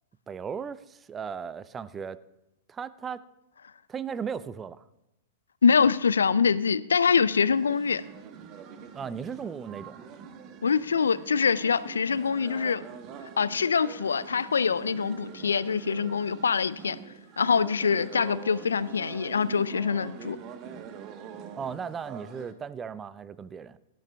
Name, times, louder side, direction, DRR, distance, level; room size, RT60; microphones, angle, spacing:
voice 1, 0.3-2.2 2.7-3.2 3.9-4.8 8.9-10.0 21.6-23.8, right 6 dB, 20° right, 0.5 m, -36 dB
voice 2, 5.6-8.0 10.6-12.8 13.4-17.0 17.4-20.4, left 6 dB, 75° left, 0.4 m, -24 dB
sound 1, 7.1-22.5, right 7 dB, 35° right, 1.1 m, -44 dB
17.5 x 12.5 x 2.3 m
figure-of-eight pair, 105°, 0 cm